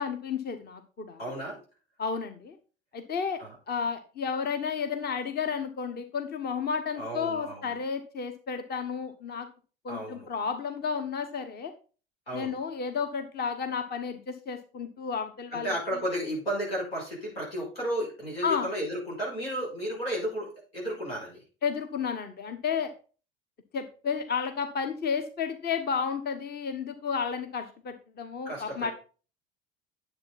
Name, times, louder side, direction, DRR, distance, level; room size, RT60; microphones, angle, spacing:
voice 1, 0.0-1.3 2.0-2.5 2.9-3.4 3.7-9.5 9.8-11.7 12.3-15.7 18.4-18.7 21.6-22.9 23.7-28.9, left 6 dB, 35° left, 8 dB, 1.3 m, -32 dB
voice 2, 1.2-1.6 3.4-3.5 6.9-7.8 9.9-10.3 12.3-12.5 15.5-21.4 28.4-28.9, equal, 80° left, -3 dB, 6.6 m, -33 dB
10.5 x 8.0 x 4.2 m, 0.36 s
figure-of-eight pair, 65°, 30 cm